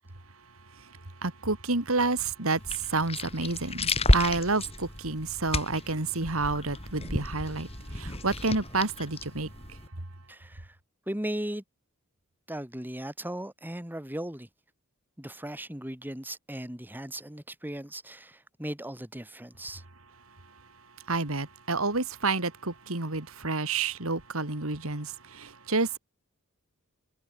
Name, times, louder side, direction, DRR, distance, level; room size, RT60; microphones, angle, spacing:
voice 1, 1.2-2.6 2.9-7.7 7.9-9.5 21.1-26.0, right 3 dB, 70° right, 2.8 m, -29 dB
sound 1, 2.6-9.9, left 1 dB, 30° left, 4.1 m, -31 dB
voice 2, 10.3-10.8 11.1-11.6 12.5-14.5 15.2-19.8, right 1 dB, 10° right, 2.0 m, -37 dB
head